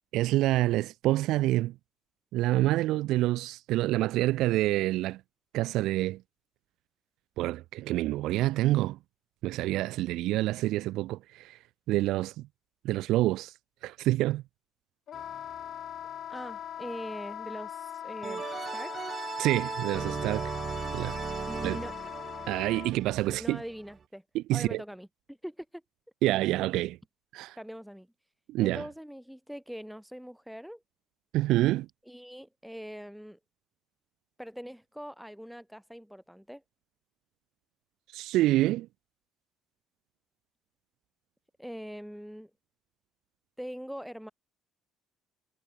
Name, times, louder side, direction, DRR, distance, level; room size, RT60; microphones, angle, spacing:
voice 1, 0.1-1.7 2.3-5.2 5.5-6.2 7.4-9.0 9.4-11.6 11.9-12.5 12.8-13.5 13.8-14.4 19.4-20.5 20.9-21.2 21.6-21.8 22.5-23.6 24.3-24.8 26.2-27.0 27.3-27.6 28.5-28.8 31.3-31.9 38.1-38.9, right 16 dB, 70° right, 0.6 m, -27 dB
Wind instrument woodwind instrument, 15.1-22.9, left 10 dB, 45° left, 2.5 m, -40 dB
sound 1, 15.1-15.6 18.2-24.0, right 6 dB, 30° right, 3.5 m, -37 dB
voice 2, 16.3-19.1 21.5-21.9 23.3-24.2 24.5-25.8 27.6-28.1 28.6-30.8 32.1-33.4 34.4-36.6 41.6-42.5 43.6-44.3, equal, ahead, 5.6 m, -42 dB
cardioid pair, 155°, 0 cm